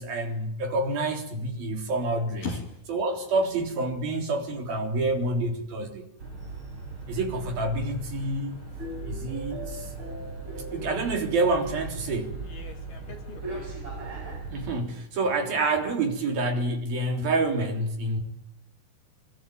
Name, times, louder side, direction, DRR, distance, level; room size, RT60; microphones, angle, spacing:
voice 1, 0.0-2.5 2.9-6.1 7.1-8.5 9.1-9.9 10.7-12.4 14.4-18.2, right 2 dB, 50° right, 5.2 m, -28 dB
voice 2, 2.4-2.8 12.4-13.7, left 4 dB, 50° left, 4.1 m, -38 dB
sound 1, 6.2-14.8, right 3 dB, 25° right, 6.1 m, -38 dB
26.0 x 22.5 x 9.2 m
omnidirectional pair, 5.5 m